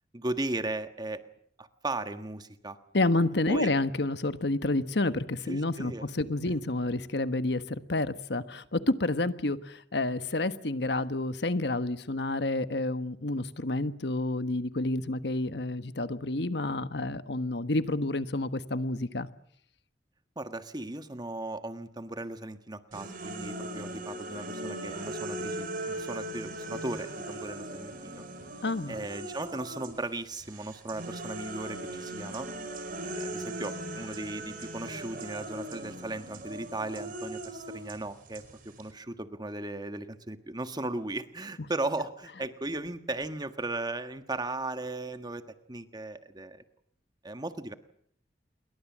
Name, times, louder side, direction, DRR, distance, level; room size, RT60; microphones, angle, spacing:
voice 1, 0.1-1.2 1.6-2.8 3.5-3.7 5.5-6.0 20.3-28.3 28.9-32.5 33.0-46.6 47.2-47.7, right 2 dB, 25° right, 9 dB, 1.6 m, -37 dB
voice 2, 2.9-19.3 28.6-29.0, left 2 dB, 70° left, 12 dB, 1.3 m, -29 dB
sound 1, 22.9-30.0 30.3-38.9, right 1 dB, 50° right, 4.6 m, -39 dB
28.0 x 22.5 x 7.4 m, 0.66 s
head